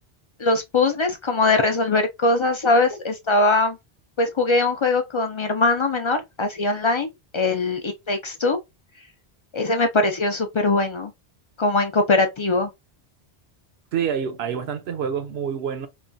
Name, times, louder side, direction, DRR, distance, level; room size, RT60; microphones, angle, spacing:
voice 1, 0.4-3.8 4.2-7.1 7.3-8.6 9.5-11.1 11.6-12.7, left 2 dB, 50° left, 0.3 m, -21 dB
voice 2, 13.9-15.9, right 7 dB, 80° right, 0.9 m, -27 dB
3.0 x 2.3 x 2.5 m
omnidirectional pair, 1.1 m